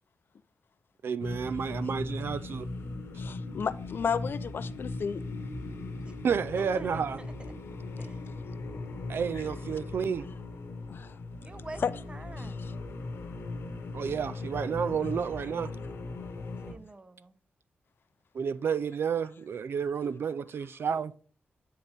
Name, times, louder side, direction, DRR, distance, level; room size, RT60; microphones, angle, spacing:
voice 1, 1.0-2.7 6.2-7.2 9.1-10.3 13.9-15.7 18.3-21.1, right 6 dB, 65° right, 0.3 m, -31 dB
sound 1, 1.2-16.7, left 2 dB, 85° left, 1.1 m, -38 dB
voice 2, 3.2-5.2 10.9-11.2 11.8-11.9 12.4-12.7, left 6 dB, 60° left, 0.4 m, -33 dB
voice 3, 6.6-7.3 8.0-8.2 11.4-11.8 12.1-12.6 16.7-17.3, right 2 dB, 25° right, 0.6 m, -46 dB
9.0 x 4.0 x 3.4 m
cardioid pair, 80°, 4 cm